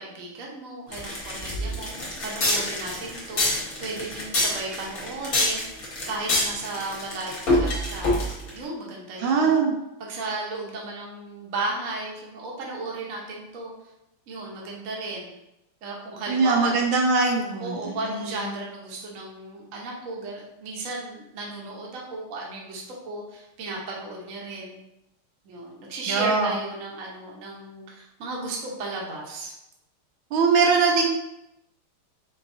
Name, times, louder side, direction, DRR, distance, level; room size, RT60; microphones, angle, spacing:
voice 1, 0.0-3.5 3.8-5.6 6.1-8.1 8.5-9.6 10.1-13.7 14.3-15.3 15.8-16.8 17.6-24.8 25.4-29.5, right 2 dB, 50° right, -2 dB, 1.0 m, -34 dB
sound 1, 0.9-8.6, left 1 dB, 50° left, 1.3 m, -26 dB
voice 2, 9.2-9.8 16.3-18.4 26.1-26.5 30.3-31.1, right 4 dB, 75° right, 1 dB, 1.4 m, -22 dB
4.5 x 3.8 x 2.7 m, 0.87 s
omnidirectional pair, 2.4 m